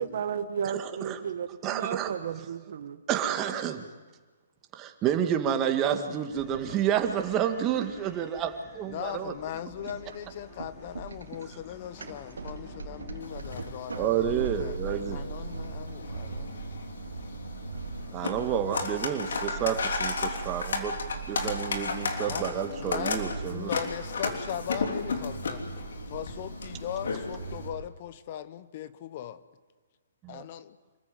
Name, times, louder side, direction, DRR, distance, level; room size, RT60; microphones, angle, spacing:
voice 1, 0.0-3.0, right 8 dB, 55° right, 10 dB, 1.5 m, -33 dB
voice 2, 0.6-1.2 1.6-2.1 3.1-3.9 4.7-9.3 14.0-15.3 18.1-21.0 21.3-23.7 30.2-30.4, right 9 dB, 25° right, 6 dB, 2.0 m, -29 dB
sound 1, 6.3-13.2, left 1 dB, 20° left, 3.4 m, -52 dB
voice 3, 8.9-16.6 22.2-25.7 26.1-29.4 30.3-30.8, left 10 dB, 45° left, 14 dB, 0.9 m, -39 dB
sound 2, 9.8-27.9, right 4 dB, 85° right, 2.1 m, -40 dB
sound 3, 13.2-27.7, left 4 dB, 70° left, 3.4 m, -35 dB
27.0 x 14.5 x 9.4 m, 1.4 s
hypercardioid pair, 135°, 0 cm